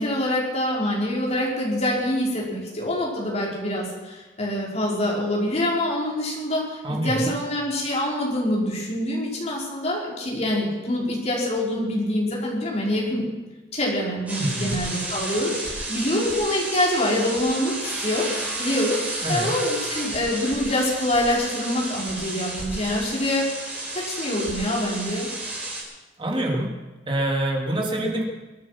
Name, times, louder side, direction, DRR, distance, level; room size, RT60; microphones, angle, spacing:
voice 1, 0.0-13.3 13.7-18.3 18.6-19.0 19.3-23.5 23.9-25.3 27.9-28.0, left 1 dB, 35° left, -3 dB, 5.0 m, -25 dB
voice 2, 6.8-7.3 14.4-14.8 19.2-19.5 26.2-26.8 27.1-28.2, right 1 dB, 25° right, 0 dB, 2.9 m, -26 dB
sound 1, 14.3-25.8, right 2 dB, 10° right, 4.9 m, -32 dB
24.0 x 9.9 x 6.0 m, 1.2 s
head